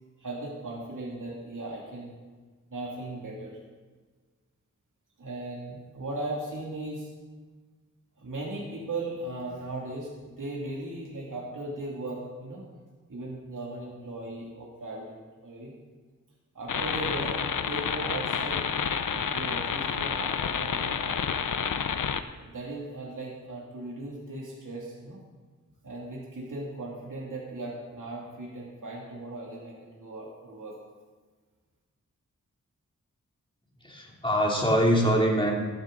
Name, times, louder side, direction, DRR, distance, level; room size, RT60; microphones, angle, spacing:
voice 1, 0.2-2.2 2.7-3.6 5.2-7.1 8.2-12.7 13.1-15.7 16.5-18.6 19.1-21.2 22.4-25.2 25.8-30.7, right 2 dB, 75° right, -4 dB, 2.6 m, -37 dB
sound 1, 16.7-22.2, left 7 dB, 80° left, 0.7 m, -29 dB
voice 2, 33.8-35.5, equal, 15° left, -2 dB, 2.9 m, -23 dB
14.5 x 12.0 x 3.9 m, 1.4 s
wide cardioid pair, 80°, 31 cm